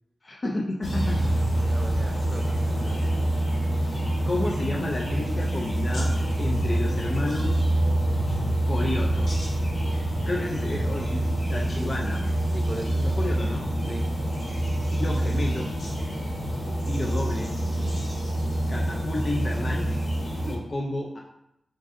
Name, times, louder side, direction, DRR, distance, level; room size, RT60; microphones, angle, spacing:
voice 1, 0.2-1.2 4.2-7.6 8.7-9.3 10.3-11.2 11.5-12.2 13.0-13.6 14.9-15.7 16.9-17.5 18.7-19.9 20.5-21.2, left 2 dB, 35° left, -1 dB, 0.5 m, -31 dB
sound 1, 0.8-20.5, right 1 dB, 65° left, 1.3 m, -26 dB
voice 2, 1.6-3.0 11.7-12.0 12.5-13.1 13.9-14.1 20.5-20.6, right 1 dB, 30° right, 3 dB, 0.6 m, -39 dB
3.9 x 3.5 x 3.7 m, 0.80 s
wide cardioid pair, 130°, 0 cm